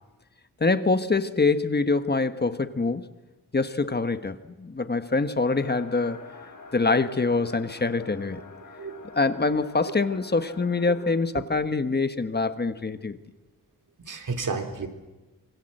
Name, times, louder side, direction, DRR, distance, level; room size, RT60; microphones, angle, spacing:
voice 1, 0.6-3.1 3.5-6.2 6.7-8.4 9.1-13.2, left 3 dB, 30° left, 11 dB, 1.2 m, -25 dB
sound 1, 5.5-11.2, left 4 dB, 60° left, 4.4 m, -46 dB
voice 2, 8.8-9.1 11.4-11.5 14.0-14.9, right 4 dB, 65° right, 6 dB, 3.5 m, -32 dB
27.0 x 25.5 x 7.9 m, 1.1 s
wide cardioid pair, 165°, 34 cm